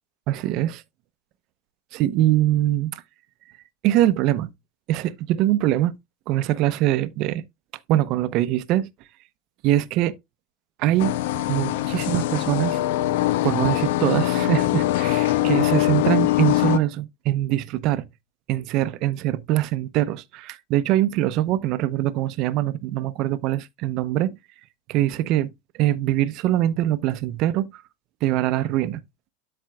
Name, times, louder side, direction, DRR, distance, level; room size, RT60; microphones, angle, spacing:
voice 1, 0.3-0.8 1.9-3.0 3.8-4.5 4.9-5.9 6.3-7.4 7.9-8.9 9.6-10.1 10.8-11.1 11.5-12.8 13.4-18.1 18.5-24.3 24.9-25.5 25.8-27.8 28.2-29.0, right 13 dB, 55° right, 0.7 m, -23 dB
sound 1, 11.0-16.8, left 15 dB, 70° left, 0.6 m, -22 dB
12.5 x 4.4 x 2.3 m
hypercardioid pair, 105°, 0 cm